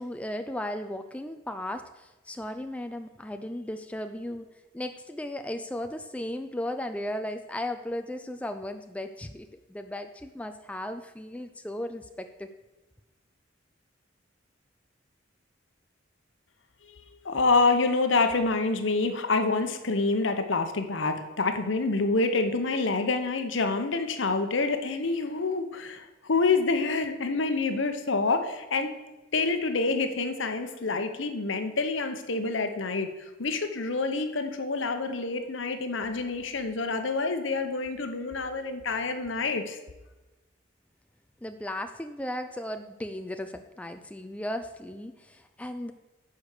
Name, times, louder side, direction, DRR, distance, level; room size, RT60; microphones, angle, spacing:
voice 1, 0.0-4.5 4.7-12.5 41.4-45.9, left 1 dB, 5° left, 7 dB, 0.3 m, -36 dB
voice 2, 17.2-28.9 29.3-39.8, left 3 dB, 75° left, 7 dB, 0.9 m, -27 dB
10.0 x 4.9 x 6.6 m, 1.1 s
head